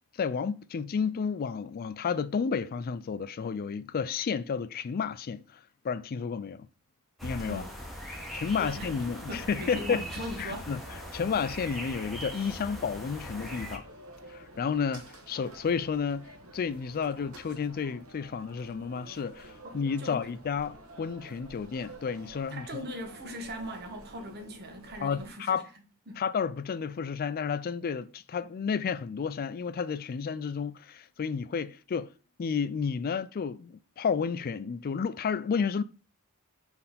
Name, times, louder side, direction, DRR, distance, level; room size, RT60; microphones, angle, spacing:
voice 1, 0.1-6.7 7.2-7.6 8.1-10.0 10.4-10.8 11.1-13.9 14.3-22.8 25.0-25.7 26.2-32.1 32.4-35.8, left 6 dB, 40° left, 0.4 m, -31 dB
sound 1, 7.2-13.8, equal, ahead, 1.4 m, -40 dB
sound 2, 8.5-25.3, right 1 dB, 70° right, 1.4 m, -50 dB
voice 2, 8.6-8.9 9.2-10.7 19.6-20.2 22.5-25.6 26.1-26.2, equal, 50° right, 1.5 m, -40 dB
5.4 x 4.4 x 4.1 m
head